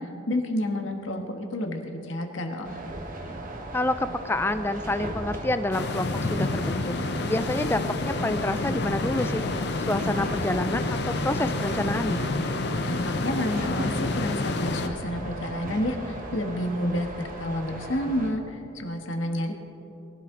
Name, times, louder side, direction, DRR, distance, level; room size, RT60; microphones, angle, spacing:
voice 1, 0.0-2.8 12.8-19.5, left 1 dB, 90° left, 4 dB, 1.5 m, -30 dB
sound 1, 2.6-18.3, right 1 dB, 45° right, 1.4 m, -37 dB
voice 2, 3.7-6.9 7.3-9.4 9.9-12.2, left 1 dB, 10° left, 11 dB, 0.4 m, -28 dB
sound 2, 5.7-14.9, left 3 dB, 60° left, 0.7 m, -29 dB
20.5 x 11.5 x 3.9 m, 2.9 s
head